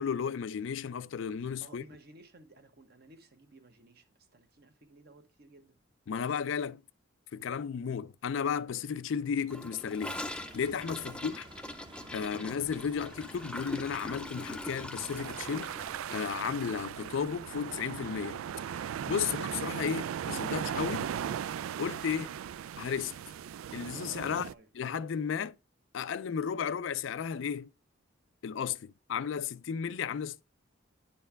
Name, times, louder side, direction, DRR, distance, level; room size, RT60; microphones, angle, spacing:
voice 1, 0.0-1.8 6.1-6.8 7.3-11.4 12.1-15.7 16.1-18.4 18.7-21.1 21.8-22.3 22.8-23.1 23.7-24.5 24.7-25.6 25.9-27.7 28.4-30.4, left 7 dB, 60° left, 0.4 m, -34 dB
voice 2, 1.6-5.8 11.0-11.1 24.1-24.7, right 2 dB, 50° right, 1.2 m, -56 dB
Gurgling / Toilet flush, 9.5-17.8 18.0-18.2 18.4-18.9 19.2-19.3 19.6-19.7 20.6-20.7, left 1 dB, 5° left, 0.5 m, -43 dB
sound 1, 10.0-16.0, right 1 dB, 25° right, 0.8 m, -51 dB
sound 2, 15.0-24.5, right 9 dB, 85° right, 0.3 m, -38 dB
9.9 x 4.5 x 3.3 m
head